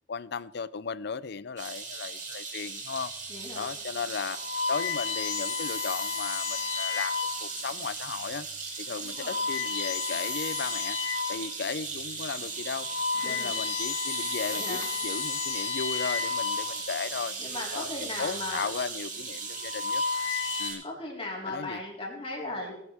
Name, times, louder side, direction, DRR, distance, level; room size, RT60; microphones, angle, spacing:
voice 1, 0.1-3.1 3.5-4.4 4.7-8.5 8.8-11.0 11.3-12.9 13.2-17.4 17.7-20.0 20.6-20.8 21.5-21.8, left 5 dB, 60° left, 18 dB, 0.5 m, -36 dB
sound 1, 1.6-20.8, right 4 dB, 45° right, 3.4 m, -37 dB
sound 2, 3.3-3.6 4.2-7.6 8.3-8.5 9.1-11.5 12.0-12.1 12.6-17.1 18.1-18.5 19.4-20.7, left 6 dB, 75° left, 1.3 m, -32 dB
voice 2, 3.3-3.7 9.0-9.5 13.1-13.6 14.5-14.9 17.4-18.7 20.8-22.7, left 2 dB, 30° left, -3 dB, 4.1 m, -37 dB
20.0 x 11.0 x 3.5 m, 0.78 s
head